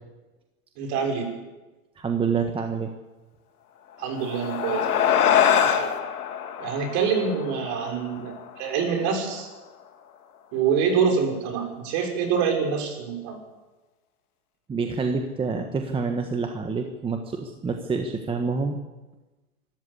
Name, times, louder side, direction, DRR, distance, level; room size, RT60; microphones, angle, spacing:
voice 1, 0.8-1.3 4.0-5.3 5.6-5.9 6.6-9.5 10.5-13.4, right 6 dB, 40° right, 3 dB, 6.2 m, -26 dB
voice 2, 2.0-2.9 14.7-18.8, right 5 dB, 10° right, 5 dB, 1.3 m, -27 dB
sound 1, 4.0-8.8, left 8 dB, 80° left, 2.9 m, -24 dB
25.0 x 13.5 x 8.5 m, 1.2 s
hypercardioid pair, 140°, 44 cm